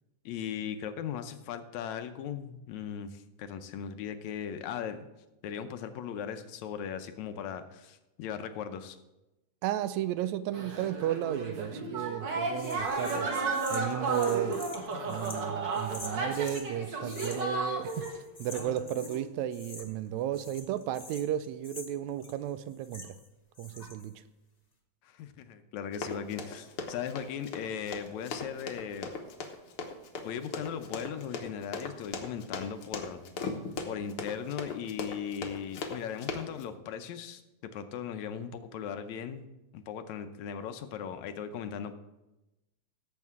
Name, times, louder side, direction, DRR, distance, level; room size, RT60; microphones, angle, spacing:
voice 1, 0.3-5.1 5.4-9.0 25.0-29.1 30.2-33.6 33.9-37.4 37.7-39.4 39.7-41.9, left 8 dB, 80° left, 9 dB, 2.0 m, -38 dB
voice 2, 9.6-13.3 13.7-14.6 15.0-23.1 23.6-24.2, right 11 dB, 80° right, 13 dB, 1.8 m, -34 dB
sound 1, 10.5-18.2 18.5-19.2, right 3 dB, 45° right, 1.9 m, -34 dB
sound 2, 12.6-16.7 17.1-17.6 17.8-19.2 19.5-20.1 20.3-23.3 23.5-24.1, left 2 dB, 40° left, 0.5 m, -47 dB
Run, 25.9-36.6, left 4 dB, 60° left, 1.7 m, -38 dB
16.5 x 7.5 x 3.6 m, 0.98 s
omnidirectional pair, 3.3 m